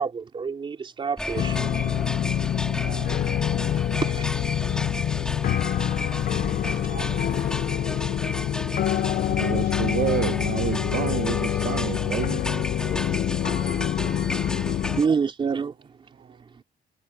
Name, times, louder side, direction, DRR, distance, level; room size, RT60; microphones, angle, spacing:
voice 1, 0.0-1.7 4.1-4.3 12.9-13.1 14.6-15.7, right 5 dB, 30° right, 3.7 m, -28 dB
sound 1, 1.2-15.1, left 1 dB, 5° left, 3.4 m, -33 dB
sound 2, 1.4-15.0, left 11 dB, 60° left, 0.7 m, -26 dB
voice 2, 2.6-3.4 6.8-8.1 15.6-16.6, right 10 dB, 60° right, 7.1 m, -47 dB
voice 3, 9.3-12.4, right 12 dB, 75° right, 1.1 m, -29 dB
cardioid pair, 175°, 16 cm